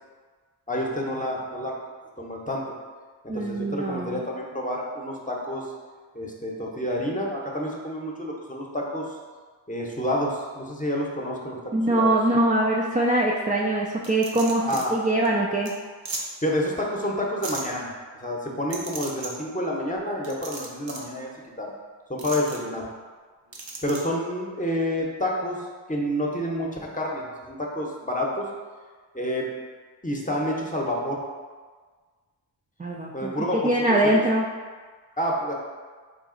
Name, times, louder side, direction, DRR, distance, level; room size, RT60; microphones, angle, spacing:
voice 1, 0.7-1.7 2.2-2.6 3.2-5.7 6.1-9.2 9.7-11.6 11.9-12.1 14.6-15.0 16.4-17.9 18.2-21.3 21.6-21.7 22.1-22.9 23.8-25.6 25.9-28.5 29.1-29.5 30.0-31.2 33.1-33.7 34.0-34.2 35.2-35.5, equal, 15° left, -2 dB, 0.8 m, -28 dB
voice 2, 3.3-4.2 11.7-15.7 32.8-33.3 33.6-34.5, right 1 dB, 20° right, -2 dB, 0.4 m, -23 dB
sound 1, 14.0-14.8 15.2-15.3 15.6-15.7 16.0-16.2 17.4-17.6 18.7-19.3 20.2-21.1 22.2-22.6 23.5-24.0, right 3 dB, 65° right, 0.8 m, -35 dB
3.9 x 2.4 x 3.8 m, 1.5 s
cardioid pair, 40°, 48 cm